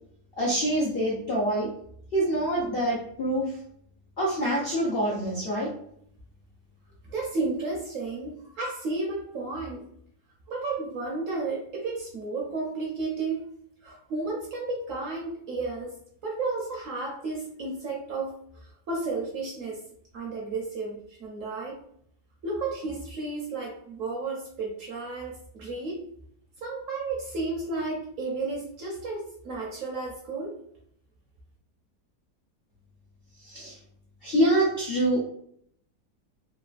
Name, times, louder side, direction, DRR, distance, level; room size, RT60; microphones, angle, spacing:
voice 1, 0.4-1.7 2.1-3.5 4.2-5.7 33.4-33.8 34.2-35.2, right 1 dB, 65° left, -6 dB, 0.5 m, -25 dB
voice 2, 7.1-9.8 10.5-13.5 13.8-15.9 16.2-18.3 18.6-19.8 20.1-21.8 22.4-26.0 26.6-30.5, right 3 dB, 65° right, -2 dB, 0.8 m, -32 dB
3.1 x 2.2 x 2.4 m, 0.67 s
omnidirectional pair, 1.8 m